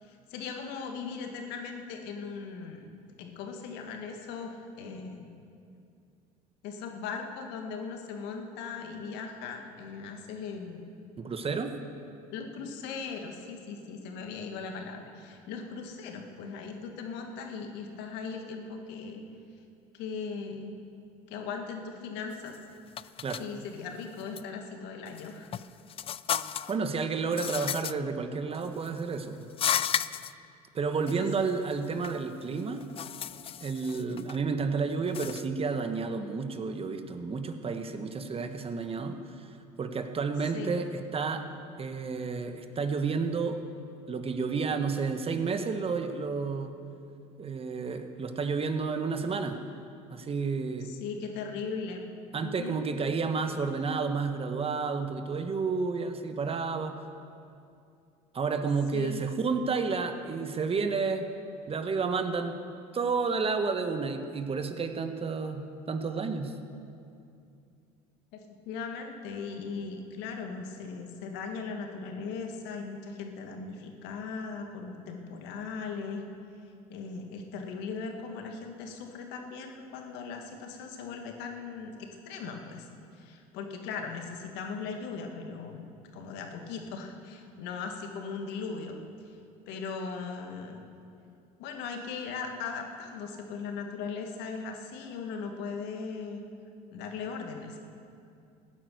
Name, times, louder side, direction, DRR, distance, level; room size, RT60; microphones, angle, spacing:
voice 1, 0.0-2.9 3.2-5.3 6.6-11.1 12.3-19.2 19.9-20.7 21.3-22.6 23.4-25.5 31.4-31.5 40.5-40.7 50.8-52.1 52.4-52.8 58.9-59.2 68.3-76.3 76.9-81.9 82.3-82.9 83.1-89.0 89.7-90.8 91.6-96.4 96.9-97.8, left 5 dB, 70° left, 4 dB, 1.8 m, -39 dB
voice 2, 11.2-11.8 23.2-23.4 26.7-29.5 30.7-32.8 33.6-39.5 39.8-41.4 41.8-43.6 44.1-46.7 47.4-49.6 50.1-50.9 52.3-57.0 58.3-61.3 61.7-62.5 62.9-66.5, right 4 dB, 30° right, 7 dB, 1.3 m, -31 dB
sound 1, 22.3-22.6 23.0-23.5 24.2-24.4 25.1-26.8 27.3-27.9 28.5-29.0 29.5-30.3 31.1-31.2 31.5-32.2 32.6-34.4 35.0-35.5, left 9 dB, 30° left, 0.4 m, -33 dB
16.0 x 9.3 x 6.5 m, 2.5 s
hypercardioid pair, 80°, 18 cm